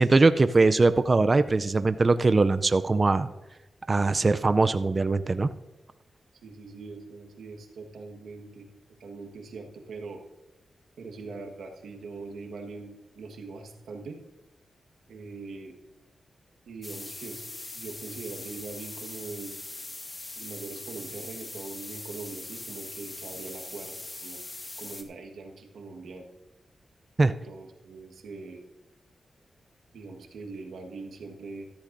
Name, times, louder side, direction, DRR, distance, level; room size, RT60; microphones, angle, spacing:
voice 1, 0.0-3.3 3.9-5.5 27.2-27.3, right 3 dB, 40° right, 11 dB, 0.5 m, -21 dB
voice 2, 6.4-8.7 9.0-10.2 11.0-14.2 15.1-15.8 16.7-17.4 17.7-19.6 20.3-24.0 24.2-24.4 24.8-26.3 27.2-28.6 29.9-31.6, right 3 dB, 85° right, 2 dB, 1.5 m, -42 dB
sound 1, 16.8-25.0, left 2 dB, 40° left, 1.6 m, -41 dB
14.0 x 13.5 x 2.6 m, 1.1 s
cardioid pair, 55°, 0 cm